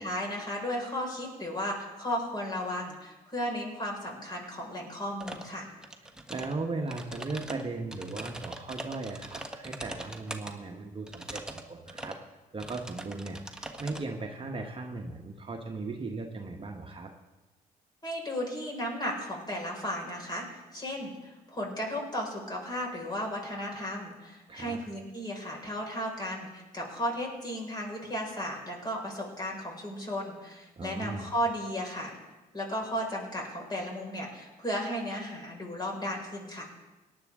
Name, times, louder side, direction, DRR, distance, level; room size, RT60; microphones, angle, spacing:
voice 1, 0.0-5.7 18.0-32.2 32.5-36.7, equal, 25° left, -1 dB, 5.2 m, -35 dB
sound 1, 5.2-5.5 5.8-6.5 6.9-10.5 11.1-11.6 11.9-12.2 12.6-14.0, right 1 dB, 5° right, 1.4 m, -41 dB
voice 2, 6.3-12.2 12.5-17.1 24.5-24.8 30.8-31.3, right 3 dB, 30° right, 2 dB, 1.3 m, -37 dB
18.0 x 11.0 x 3.7 m, 1.1 s
supercardioid pair, 70°, 18 cm